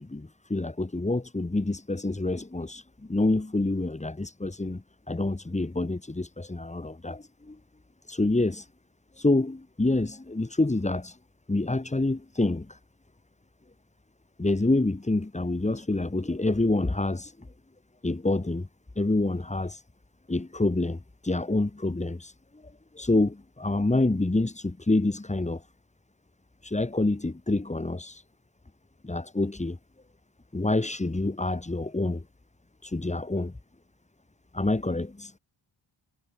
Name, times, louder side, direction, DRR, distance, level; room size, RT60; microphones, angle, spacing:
voice 1, 0.0-7.6 8.1-8.7 9.1-11.2 11.5-12.8 14.4-17.5 18.0-18.7 19.0-19.8 20.3-25.7 26.6-28.2 29.0-29.8 30.5-32.2 32.8-33.6 34.5-35.3, left 2 dB, 15° left, 2.9 m, -27 dB
wide cardioid pair, 180°, 49 cm